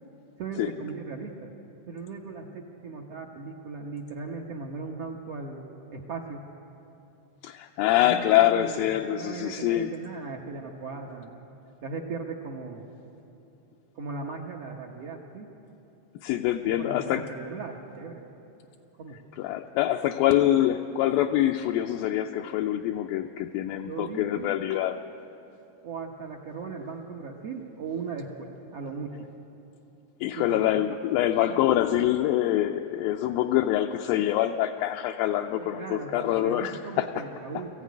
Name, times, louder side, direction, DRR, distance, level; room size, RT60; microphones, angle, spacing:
voice 1, 0.4-1.5 1.9-5.6 5.9-6.4 8.0-11.4 11.8-12.9 13.9-15.5 16.6-18.3 19.0-19.2 23.9-24.6 25.8-29.3 30.4-30.6 31.1-31.2 31.5-31.6 35.6-37.8, right 4 dB, 65° right, -1 dB, 1.6 m, -38 dB
voice 2, 7.4-9.9 16.2-17.3 19.4-25.0 30.2-37.1, left 13 dB, 80° left, 3 dB, 2.2 m, -25 dB
20.5 x 14.5 x 9.3 m, 2.8 s
omnidirectional pair, 4.2 m